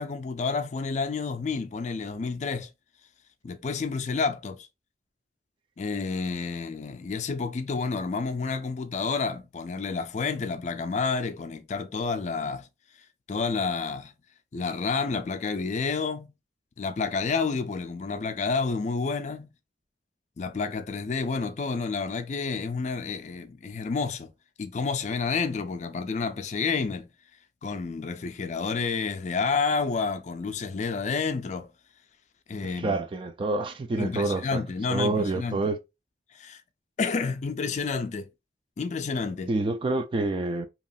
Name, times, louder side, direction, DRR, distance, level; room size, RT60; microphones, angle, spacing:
voice 1, 0.0-2.7 3.4-4.7 5.8-12.7 13.3-14.1 14.5-16.3 16.8-19.5 20.4-24.3 24.6-27.1 27.6-31.7 32.5-33.0 33.9-35.7 36.3-36.6 37.0-38.3 38.8-39.5, left 4 dB, 40° left, 0.4 m, -29 dB
voice 2, 32.8-34.6 34.9-35.8 39.5-40.7, right 2 dB, 30° right, 0.3 m, -27 dB
2.9 x 2.4 x 2.5 m
head